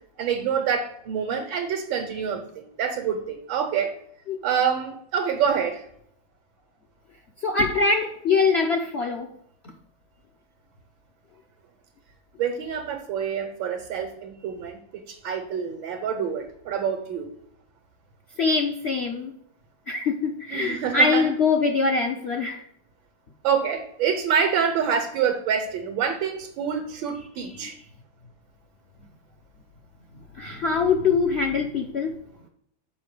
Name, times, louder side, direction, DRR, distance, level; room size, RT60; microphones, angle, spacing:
voice 1, 0.2-3.9 4.4-5.9 12.4-17.3 20.5-21.3 23.4-27.8, right 7 dB, 90° right, 3 dB, 1.8 m, -26 dB
voice 2, 7.4-9.3 18.4-19.3 19.9-22.6 27.6-27.7 30.4-32.2, left 4 dB, 65° left, 2 dB, 0.6 m, -23 dB
6.9 x 5.2 x 4.9 m, 0.70 s
omnidirectional pair, 2.1 m